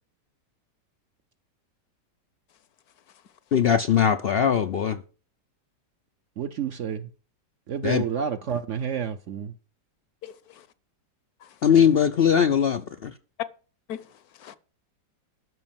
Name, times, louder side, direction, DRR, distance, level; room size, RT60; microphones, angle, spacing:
voice 1, 3.5-5.0 7.8-8.0 11.6-13.1, left 8 dB, 85° left, 0.5 m, -20 dB
voice 2, 6.4-7.1 7.7-9.5, right 8 dB, 60° right, 0.8 m, -29 dB
voice 3, 10.2-10.7 11.4-11.6 13.9-14.6, left 9 dB, 65° left, 1.1 m, -42 dB
12.5 x 5.3 x 7.3 m
omnidirectional pair, 1.8 m